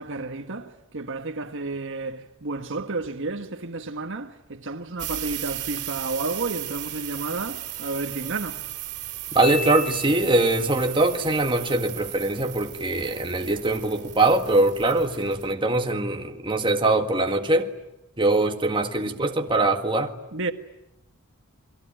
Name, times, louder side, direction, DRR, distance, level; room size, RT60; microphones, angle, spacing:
voice 1, 0.0-8.6 19.0-19.2 20.3-20.5, right 3 dB, 55° right, 1.6 m, -31 dB
sound 1, 5.0-15.5, right 14 dB, 90° right, 3.0 m, -36 dB
voice 2, 9.3-17.7 18.2-20.1, right 2 dB, 20° right, 1.8 m, -22 dB
Marimba xylophone, 9.4-10.8, left 6 dB, 45° left, 5.2 m, -34 dB
29.5 x 22.5 x 9.0 m
head